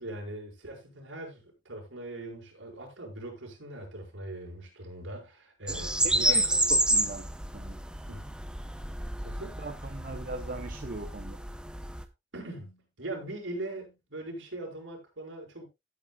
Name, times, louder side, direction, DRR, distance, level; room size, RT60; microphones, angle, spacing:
voice 1, 0.0-6.6 8.1-8.2 9.2-9.7 12.3-15.6, right 1 dB, 80° right, 5.8 m, -41 dB
sound 1, 5.7-12.0, right 1 dB, 5° right, 0.7 m, -29 dB
voice 2, 5.7-7.8 9.6-11.4, right 2 dB, 45° right, 0.9 m, -40 dB
16.0 x 8.6 x 2.3 m
head